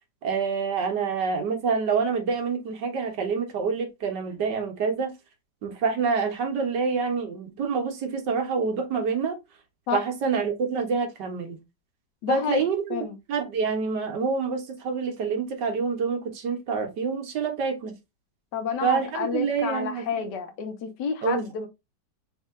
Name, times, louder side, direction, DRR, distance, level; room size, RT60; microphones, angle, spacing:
voice 1, 0.2-5.1 5.6-9.4 9.9-11.6 12.3-17.9 18.8-20.3 21.2-21.4, right 5 dB, 90° right, 1.7 m, -27 dB
voice 2, 12.2-12.6 12.9-13.2 18.5-21.7, left 7 dB, 85° left, 1.5 m, -30 dB
4.1 x 2.7 x 3.7 m
omnidirectional pair, 1.8 m